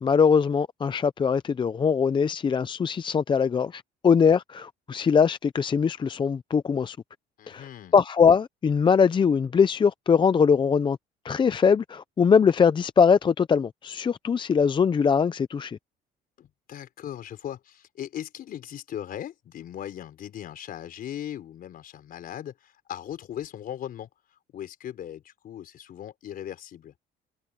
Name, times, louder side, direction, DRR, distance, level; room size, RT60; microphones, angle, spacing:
voice 1, 0.0-7.0 7.5-11.0 11.2-15.8, left 6 dB, 30° left, 0.6 m, -22 dB
voice 2, 7.4-7.9 16.4-24.1 24.5-26.9, left 10 dB, 60° left, 4.5 m, -38 dB
cardioid pair, 110°, 17 cm